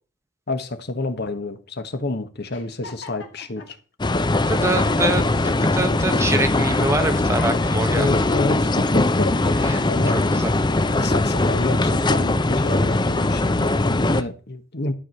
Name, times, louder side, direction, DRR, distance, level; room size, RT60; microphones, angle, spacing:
voice 1, 0.5-3.8 7.9-10.2 10.9-14.9, left 2 dB, 60° left, 1.4 m, -29 dB
sound 1, 2.5-3.7 4.3-4.4 4.7-5.8 6.3-6.5 7.0-8.5 9.0-9.7 10.2-11.5 12.0-13.0, left 2 dB, 80° left, 2.6 m, -38 dB
sound 2, 4.0-14.2, left 2 dB, 25° left, 0.6 m, -20 dB
voice 2, 4.5-5.2 5.6-8.2 9.6-9.8 10.3-10.5, right 2 dB, 15° right, 1.4 m, -25 dB
12.5 x 4.9 x 7.7 m
head